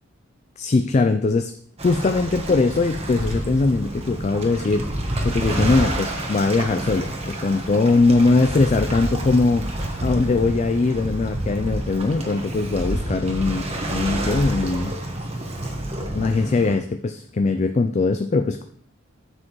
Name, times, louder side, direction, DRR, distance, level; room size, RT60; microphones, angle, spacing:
voice 1, 0.6-1.5 1.8-4.9 5.2-9.7 10.0-14.9 15.9-18.6, left 3 dB, 35° left, 8 dB, 0.3 m, -21 dB
Waves surf, 1.8-16.8, right 1 dB, 30° right, 1.2 m, -29 dB
9.6 x 7.6 x 3.1 m, 0.62 s
head